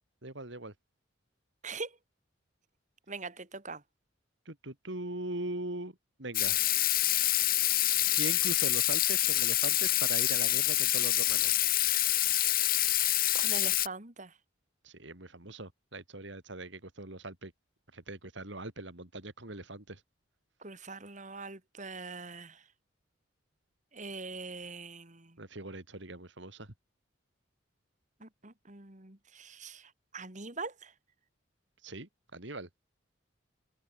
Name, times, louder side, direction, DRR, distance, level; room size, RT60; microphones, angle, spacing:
voice 1, 0.2-0.7 4.5-6.6 8.1-11.6 14.8-17.5 17.9-20.0 25.4-26.7 31.8-32.7, right 2 dB, 65° right, 3.1 m, -41 dB
voice 2, 1.6-2.0 3.1-3.8 13.3-14.4 20.6-22.6 23.9-25.4 28.2-30.9, right 3 dB, 40° right, 2.6 m, -43 dB
Water tap faucet / Sink (filling or washing), 6.3-13.9, left 14 dB, 45° left, 1.9 m, -27 dB
head